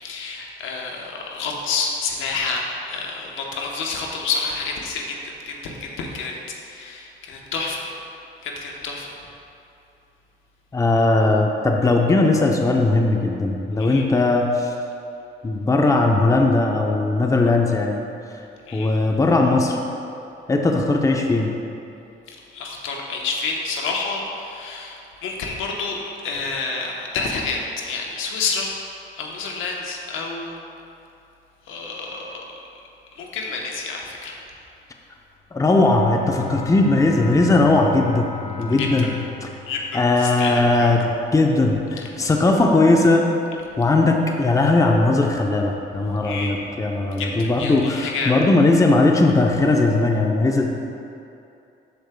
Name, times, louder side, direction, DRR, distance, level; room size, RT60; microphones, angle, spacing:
voice 1, 0.0-6.3 6.6-7.9 8.4-9.2 13.8-14.0 18.7-18.9 22.3-28.8 29.1-30.6 31.7-32.5 33.2-34.4 38.8-39.1 39.7-40.9 42.1-42.4 46.2-46.6 47.2-48.3, left 4 dB, 85° left, 0 dB, 1.0 m, -29 dB
voice 2, 10.7-14.7 15.4-18.0 18.7-19.8 20.5-21.5 35.5-38.3 38.6-39.1 39.9-43.3 43.8-50.7, left 2 dB, 15° left, 1 dB, 0.6 m, -18 dB
Bowed string instrument, 35.5-40.4, left 7 dB, 45° left, 1.0 m, -36 dB
13.5 x 4.9 x 2.2 m, 2.7 s
cardioid pair, 90°, 20 cm